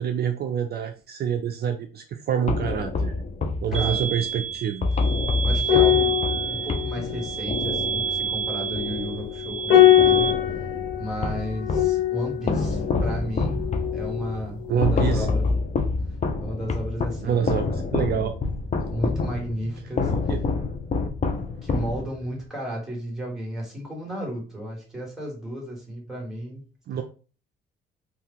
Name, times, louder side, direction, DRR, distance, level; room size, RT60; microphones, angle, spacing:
voice 1, 0.0-3.1 3.6-4.9 14.7-15.3 17.2-18.4 20.3-20.4 26.9-27.0, right 8 dB, 55° right, 7 dB, 0.4 m, -26 dB
sound 1, 2.5-9.6 10.0-12.0 12.5-22.4, left 3 dB, 35° left, 0.6 m, -27 dB
voice 2, 3.7-4.1 5.4-10.4 11.0-13.6 13.9-15.5 16.4-17.5 18.9-20.3 21.6-26.6, equal, ahead, -3 dB, 1.7 m, -33 dB
sound 2, 3.7-10.3, right 7 dB, 35° right, 0.8 m, -30 dB
sound 3, 5.6-14.4 14.6-14.9, left 12 dB, 70° left, 1.2 m, -23 dB
2.7 x 2.4 x 3.6 m, 0.37 s
cardioid pair, 90°, 20 cm